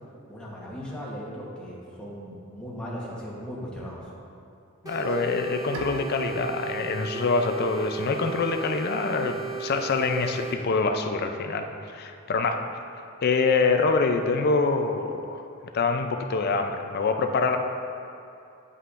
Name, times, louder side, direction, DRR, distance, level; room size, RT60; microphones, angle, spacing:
voice 1, 0.3-4.0, equal, 5° left, -6 dB, 1.1 m, -37 dB
voice 2, 4.8-12.6 13.2-15.4 15.7-17.6, left 4 dB, 45° left, 5 dB, 0.4 m, -25 dB
sound 1, 4.8-10.6, right 7 dB, 15° right, 0.5 m, -36 dB
Bowed string instrument, 5.7-9.0, right 2 dB, 85° right, 0.7 m, -42 dB
9.6 x 5.5 x 2.5 m, 2.6 s
head